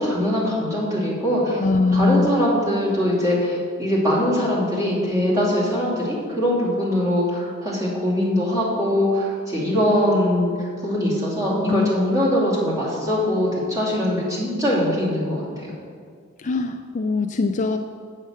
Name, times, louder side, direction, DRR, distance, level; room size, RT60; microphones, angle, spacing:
voice 1, 0.0-1.6 1.9-15.7, equal, 15° right, -7 dB, 2.9 m, -22 dB
voice 2, 1.6-2.4 11.7-11.9 16.4-17.8, left 3 dB, 35° left, 5 dB, 0.4 m, -21 dB
8.6 x 7.4 x 6.4 m, 2.1 s
head